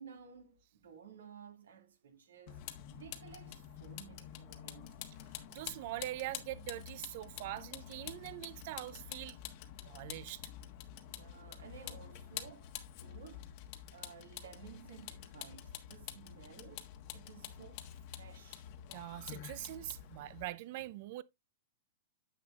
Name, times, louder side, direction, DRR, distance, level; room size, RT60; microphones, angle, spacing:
voice 1, 0.0-5.0 11.1-13.5 13.9-17.9 18.1-18.7, right 7 dB, 85° right, 2.2 m, -55 dB
Vehicle, 2.5-20.4, left 11 dB, 50° left, 1.3 m, -48 dB
voice 2, 5.5-9.4 9.9-10.4 18.9-21.2, right 16 dB, 55° right, 0.6 m, -43 dB
9.9 x 7.0 x 2.5 m
hypercardioid pair, 130°, 0 cm